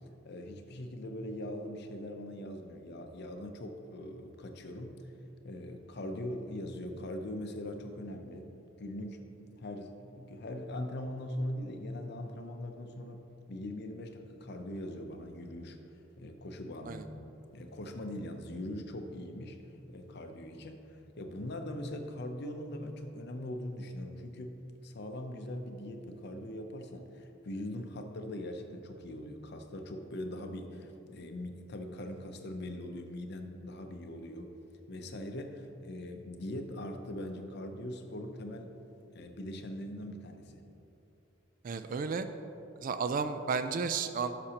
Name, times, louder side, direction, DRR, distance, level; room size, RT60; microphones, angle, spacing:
voice 1, 0.2-5.1 5.4-8.5 8.8-9.2 9.6-15.8 16.2-17.3 17.5-19.6 19.9-24.6 24.8-34.5 34.9-38.7 39.1-40.6, left 1 dB, 55° left, 5 dB, 0.6 m, -41 dB
voice 2, 41.6-42.3 42.8-44.4, right 5 dB, 45° right, 10 dB, 0.3 m, -32 dB
11.5 x 5.9 x 2.9 m, 2.8 s
head